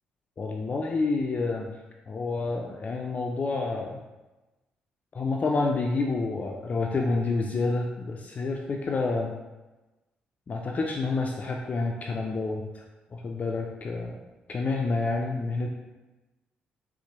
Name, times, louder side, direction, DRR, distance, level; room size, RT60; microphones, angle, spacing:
voice 1, 0.4-1.7 2.1-4.0 5.1-9.3 10.5-12.8 13.1-14.2 14.5-15.7, left 3 dB, 40° left, 1 dB, 0.3 m, -28 dB
4.3 x 2.0 x 2.9 m, 1.1 s
supercardioid pair, 60°, 4 cm